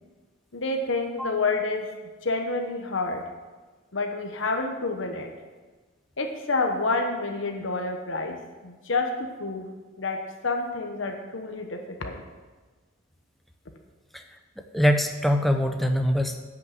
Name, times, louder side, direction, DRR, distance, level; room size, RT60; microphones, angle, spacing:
voice 1, 0.5-1.9 2.2-3.3 3.9-5.3 6.2-9.6 10.0-12.2, left 3 dB, 75° left, 4 dB, 1.1 m, -28 dB
voice 2, 14.7-16.5, equal, ahead, 5 dB, 0.7 m, -23 dB
10.0 x 6.4 x 7.8 m, 1.3 s
head